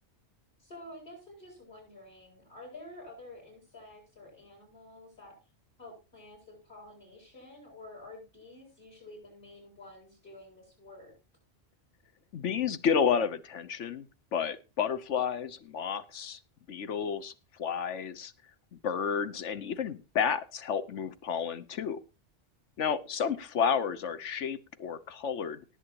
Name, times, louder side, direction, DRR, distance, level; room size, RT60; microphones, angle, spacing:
voice 1, 0.6-5.4 5.8-11.1, left 1 dB, 50° left, -6 dB, 7.9 m, -50 dB
voice 2, 12.3-14.0 14.3-16.4 16.7-17.3 17.6-18.3 18.7-22.0 22.8-25.6, left 7 dB, 85° left, 14 dB, 1.3 m, -31 dB
19.0 x 8.3 x 3.0 m, 0.31 s
omnidirectional pair, 1.2 m